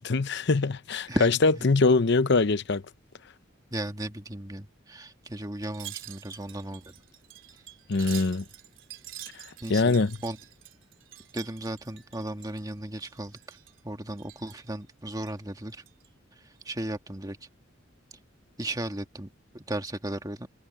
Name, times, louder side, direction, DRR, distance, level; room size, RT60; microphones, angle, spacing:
voice 1, 0.0-2.8 7.9-8.4 9.7-10.2, left 3 dB, 60° left, 0.8 m, -23 dB
voice 2, 1.1-1.7 3.7-6.9 8.0-8.1 9.6-10.0 10.2-10.4 11.3-13.6 13.8-15.8 16.4-17.4 18.6-20.5, right 1 dB, 20° right, 1.7 m, -35 dB
Wind chime, 5.6-12.7 13.0-13.8 14.2-14.7 15.2-16.1 16.5-16.6, right 14 dB, 70° right, 3.3 m, -47 dB
head